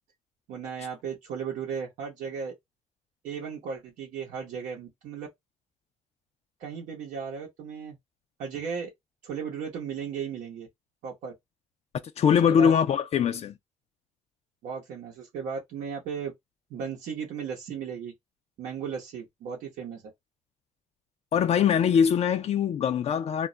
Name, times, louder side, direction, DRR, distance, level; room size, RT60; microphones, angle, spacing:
voice 1, 0.5-2.5 3.2-5.3 6.6-8.0 8.4-8.9 9.2-10.7 11.0-11.3 12.5-12.7 14.6-16.3 16.7-18.1 18.6-20.0, right 6 dB, 85° right, 0.8 m, -35 dB
voice 2, 12.2-13.5 21.3-23.5, left 7 dB, 55° left, 0.4 m, -22 dB
2.3 x 2.0 x 3.7 m
cardioid pair, 75°, 13 cm